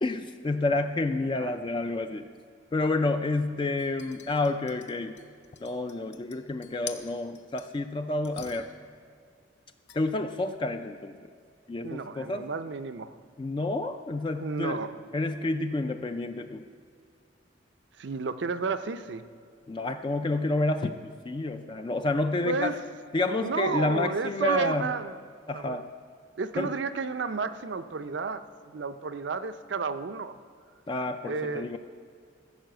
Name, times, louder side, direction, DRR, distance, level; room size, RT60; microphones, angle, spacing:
voice 1, 0.0-2.3 2.7-5.2 5.6-8.7 9.9-11.2 11.7-12.5 13.4-14.8 15.1-16.6 19.7-21.0 21.3-22.8 23.1-24.9 25.5-25.9 26.6-26.7 30.9-31.8, left 2 dB, 25° left, 7 dB, 0.3 m, -29 dB
sound 1, 3.8-7.9 8.2-8.9 9.9-10.0, left 8 dB, 65° left, 0.6 m, -47 dB
voice 2, 11.8-13.2 14.4-15.0 18.0-19.2 22.5-22.8 23.4-25.1 25.5-25.8 26.4-30.4 31.2-31.8, right 5 dB, 65° right, 11 dB, 0.5 m, -32 dB
14.0 x 5.5 x 7.7 m, 2.2 s
head